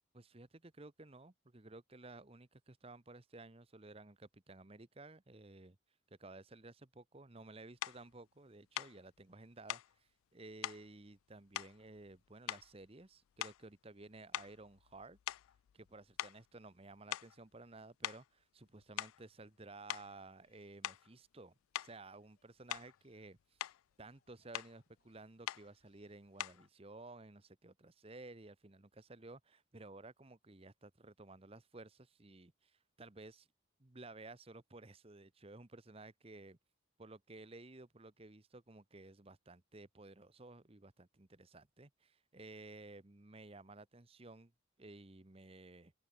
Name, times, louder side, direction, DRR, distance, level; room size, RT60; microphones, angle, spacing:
voice 1, 0.1-5.8 6.1-15.2 15.7-23.6 24.0-33.5 33.8-36.6 37.0-44.5 44.8-45.9, right 2 dB, 30° right, 1.0 m, -55 dB
sound 1, 7.8-8.0 8.7-9.0 9.7-9.9 10.6-10.8 11.5-12.2 12.5-12.9 13.4-13.7 14.3-15.9 16.2-16.4 17.1-17.4 18.0-18.3 18.8-19.3 19.9-20.1 20.8-21.1 21.7-22.0 22.7-23.0 23.4-23.8 24.5-24.8 25.5-25.7 26.4-26.7, left 14 dB, 85° left, 0.3 m, -43 dB
sound 2, 19.8-27.0, left 4 dB, 40° left, 4.4 m, -86 dB
open air
head